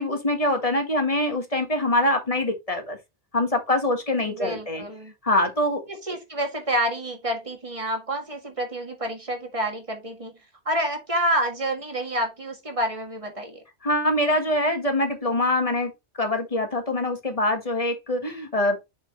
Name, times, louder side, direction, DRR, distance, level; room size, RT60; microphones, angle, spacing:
voice 1, 0.0-3.0 3.3-4.8 5.2-5.8 13.8-15.9 16.2-18.8, left 1 dB, 35° left, 1.5 m, -24 dB
voice 2, 4.2-5.1 6.0-10.4 10.7-13.6, right 1 dB, 30° right, 1.8 m, -28 dB
6.9 x 4.4 x 3.1 m
omnidirectional pair, 1.1 m